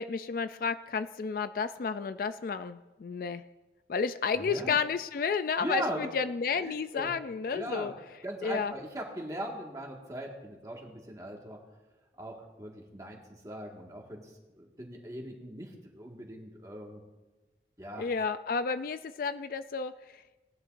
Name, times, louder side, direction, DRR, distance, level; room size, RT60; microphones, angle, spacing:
voice 1, 0.0-3.4 3.9-7.9 8.4-8.7 18.0-20.2, left 5 dB, 50° left, 12 dB, 0.3 m, -31 dB
voice 2, 4.4-4.8 5.6-6.1 6.5-7.1 7.5-7.9 8.2-11.6 12.2-17.0 17.8-18.1, right 1 dB, 20° right, 0 dB, 1.7 m, -39 dB
19.0 x 11.0 x 2.6 m, 1.1 s
head